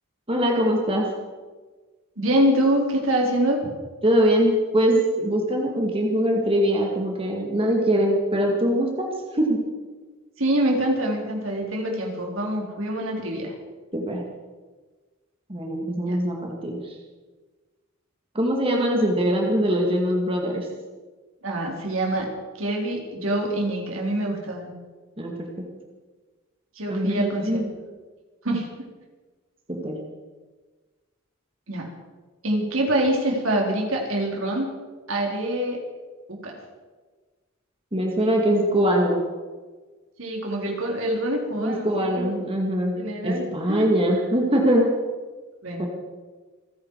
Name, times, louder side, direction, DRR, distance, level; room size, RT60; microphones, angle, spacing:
voice 1, 0.3-1.1 4.0-9.1 9.3-9.6 13.9-14.2 15.5-17.0 18.3-20.7 25.2-25.5 26.9-27.7 29.7-30.0 37.9-39.2 41.6-42.9 43.2-44.9 45.8-45.9, equal, 25° right, 0 dB, 2.3 m, -22 dB
voice 2, 2.2-3.7 10.4-13.5 16.1-16.2 21.4-22.3 22.6-24.7 26.8-27.6 28.4-28.7 31.7-31.9 32.4-34.7 35.1-35.8 36.3-36.5 40.2-42.3 43.0-43.9 45.6-45.8, right 1 dB, 75° right, 0 dB, 4.0 m, -25 dB
28.0 x 10.5 x 4.9 m, 1.3 s
head